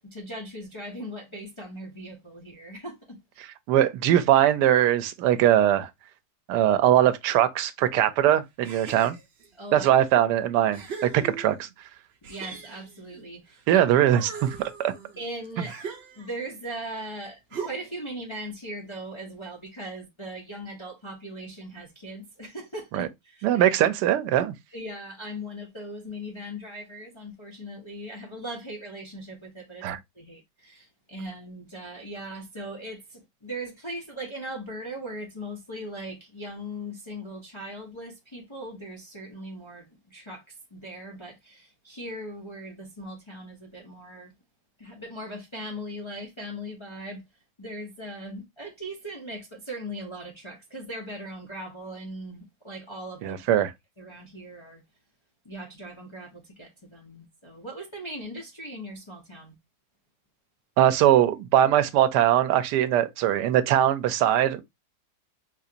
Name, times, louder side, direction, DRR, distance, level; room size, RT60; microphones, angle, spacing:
voice 1, 0.0-3.5 9.5-9.9 12.2-13.9 15.2-15.7 16.2-23.7 24.7-29.9 30.1-44.3 44.8-47.2 47.6-53.4 54.0-54.8 55.4-59.5, right 1 dB, 30° left, 0.5 m, -39 dB
voice 2, 3.7-5.9 6.5-9.2 9.7-11.7 13.7-14.9 23.0-23.1 23.4-24.5 29.8-30.0 53.2-53.7 60.8-64.6, right 11 dB, 80° right, 1.2 m, -21 dB
sound 1, 8.6-9.5 10.1-10.2 10.7-11.7 12.2-13.7 14.0-16.5 17.5-18.1, right 5 dB, 55° right, 0.7 m, -40 dB
3.9 x 2.5 x 2.8 m
omnidirectional pair, 1.8 m